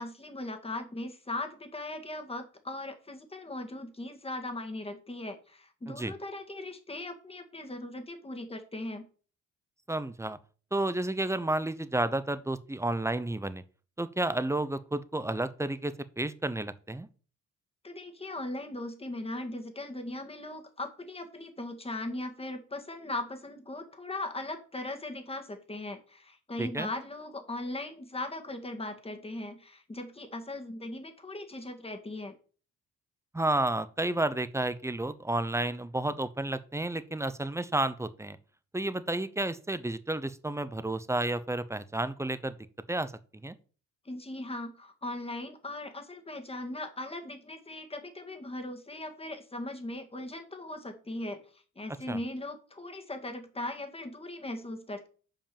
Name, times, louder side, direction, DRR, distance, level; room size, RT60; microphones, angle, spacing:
voice 1, 0.0-9.1 17.8-32.4 44.1-55.1, left 2 dB, 20° left, 5 dB, 2.0 m, -39 dB
voice 2, 9.9-10.4 10.7-13.6 14.0-17.1 26.6-26.9 33.3-38.4 38.7-42.5 42.9-43.1 43.4-43.6 52.1-52.2, right 2 dB, 10° right, 14 dB, 0.8 m, -31 dB
7.5 x 5.3 x 7.2 m, 0.39 s
cardioid pair, 90°, 30 cm